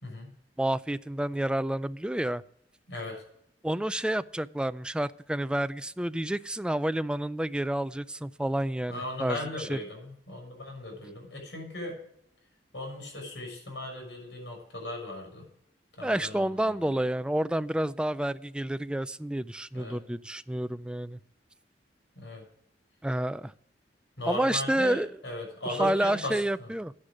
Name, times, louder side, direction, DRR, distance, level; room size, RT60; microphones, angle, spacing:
voice 1, 0.6-2.4 3.6-9.8 16.0-21.2 23.0-23.5 24.3-25.2 25.7-26.9, right 1 dB, 5° right, 14 dB, 0.3 m, -29 dB
voice 2, 2.9-3.2 8.9-12.0 12.7-15.5 15.9-17.0 19.7-20.0 22.1-22.4 24.2-26.7, left 1 dB, 85° left, 1 dB, 6.4 m, -37 dB
11.5 x 9.9 x 5.1 m, 0.70 s
head